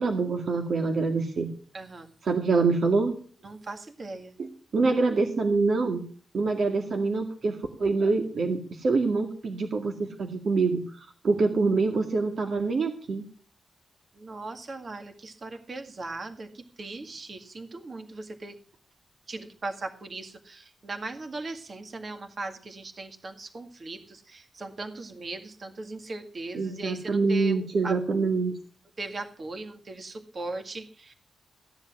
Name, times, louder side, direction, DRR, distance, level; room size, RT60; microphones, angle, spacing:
voice 1, 0.0-1.5 2.2-3.1 4.4-6.1 6.3-13.2 26.5-28.6, right 4 dB, 55° right, 4 dB, 2.0 m, -25 dB
voice 2, 1.7-2.1 3.4-4.3 14.2-18.6 19.3-27.9 29.0-31.1, right 2 dB, 40° right, 6 dB, 1.9 m, -39 dB
16.5 x 10.5 x 6.0 m, 0.43 s
wide cardioid pair, 135°, 0 cm